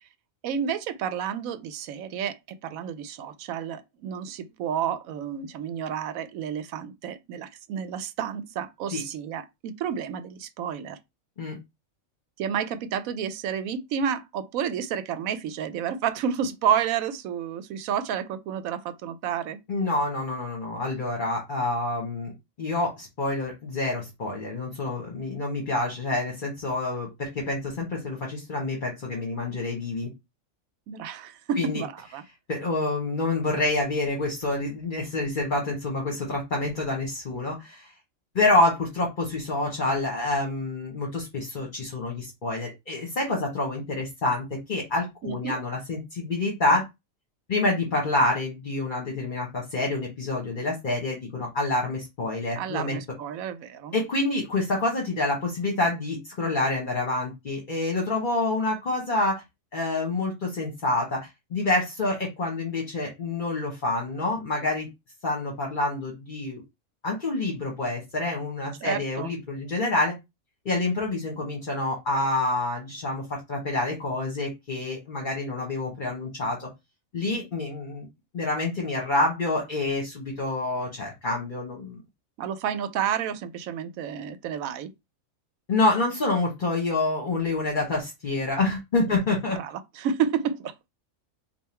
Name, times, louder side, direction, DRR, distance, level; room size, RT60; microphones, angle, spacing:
voice 1, 0.4-11.0 12.4-19.6 30.9-32.2 45.2-45.6 52.6-53.9 68.8-69.3 77.2-77.4 82.4-84.9 89.1-89.2 89.6-90.9, right 8 dB, 90° right, 1.0 m, -30 dB
voice 2, 19.7-22.3 22.6-30.1 31.6-31.8 32.5-37.9 38.3-46.9 47.5-53.0 53.9-59.4 59.7-64.9 65.2-66.6 67.0-70.1 70.6-76.7 77.1-78.1 78.3-82.0 85.7-89.6, left 2 dB, 40° left, 1.2 m, -27 dB
3.7 x 2.6 x 4.3 m
omnidirectional pair, 1.4 m